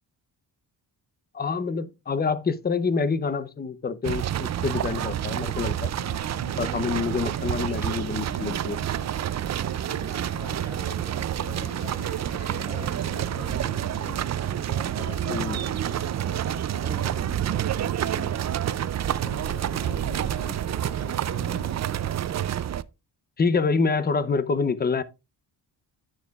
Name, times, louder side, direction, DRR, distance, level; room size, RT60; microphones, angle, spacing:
voice 1, 1.3-5.9 6.6-8.8 15.3-15.6 23.4-25.0, left 4 dB, 25° left, 0.7 m, -26 dB
sound 1, 4.0-22.8, right 11 dB, 40° right, 0.4 m, -28 dB
sound 2, 5.5-21.8, left 7 dB, 60° left, 1.4 m, -46 dB
voice 2, 10.3-18.9 19.2-21.7, left 4 dB, 85° left, 4.9 m, -44 dB
10.5 x 9.0 x 2.4 m
wide cardioid pair, 135°, 42 cm